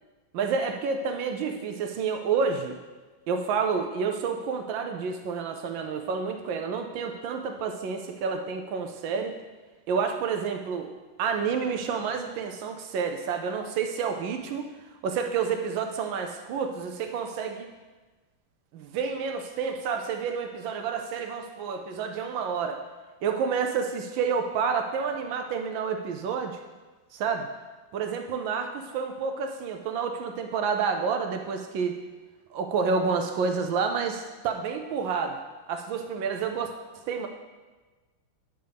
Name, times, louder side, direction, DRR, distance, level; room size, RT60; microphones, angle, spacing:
voice 1, 0.3-2.8 3.3-9.4 9.9-10.9 11.2-14.7 15.0-17.7 18.7-22.8 23.2-26.6 27.1-27.5 27.9-32.0 32.5-35.4 35.7-36.7 36.9-37.3, right 5 dB, 75° right, 4 dB, 1.2 m, -29 dB
8.9 x 6.8 x 3.4 m, 1.3 s
omnidirectional pair, 2.3 m